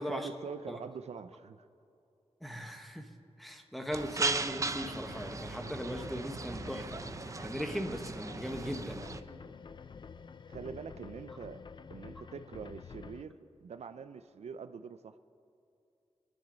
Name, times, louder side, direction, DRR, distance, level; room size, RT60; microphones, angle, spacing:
voice 1, 0.0-1.6 10.5-11.6 11.9-15.2, right 6 dB, 85° right, 11 dB, 0.5 m, -44 dB
voice 2, 2.4-3.1 3.4-7.0 7.4-9.0, equal, ahead, 4 dB, 1.2 m, -38 dB
sound 1, 3.9-9.2, right 3 dB, 30° right, 0.5 m, -37 dB
sound 2, 5.1-13.2, left 5 dB, 45° left, 0.4 m, -49 dB
28.0 x 10.0 x 4.0 m, 2.6 s
wide cardioid pair, 150°, 11 cm